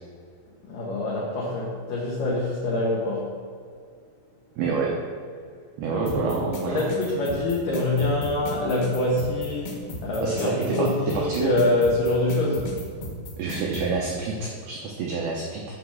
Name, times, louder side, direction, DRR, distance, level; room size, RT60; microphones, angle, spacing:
voice 1, 0.6-3.4 5.9-6.3 6.6-12.7, left 2 dB, 80° left, -4 dB, 1.9 m, -25 dB
voice 2, 4.6-4.9 5.8-6.8 10.2-10.9 11.1-11.5 13.4-15.6, right 4 dB, 90° right, -2 dB, 2.1 m, -28 dB
sound 1, 6.1-13.9, left 2 dB, 60° left, 3.1 m, -35 dB
8.0 x 6.9 x 6.4 m, 2.1 s
omnidirectional pair, 5.8 m